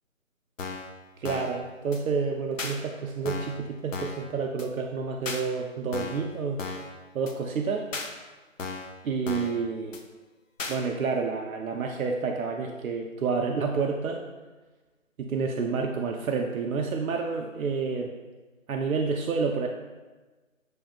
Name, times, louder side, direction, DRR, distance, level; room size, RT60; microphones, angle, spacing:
sound 1, 0.6-0.9 1.2-1.6 1.9-2.0 2.6-2.7 3.3-3.6 3.9-4.2 4.6-4.7 5.3-5.4 5.9-6.3 6.6-6.9 7.3-7.4 7.9-8.1 8.6-8.9 9.3-9.6 9.9-10.0 10.6-10.8, left 4 dB, 70° left, 0.7 m, -35 dB
voice 1, 1.2-6.6 7.1-7.9 9.0-10.0 10.7-14.2 15.2-18.1 18.7-19.7, right 5 dB, 90° right, 2 dB, 0.6 m, -29 dB
7.7 x 2.6 x 2.3 m, 1.3 s
figure-of-eight pair, 180°, 41 cm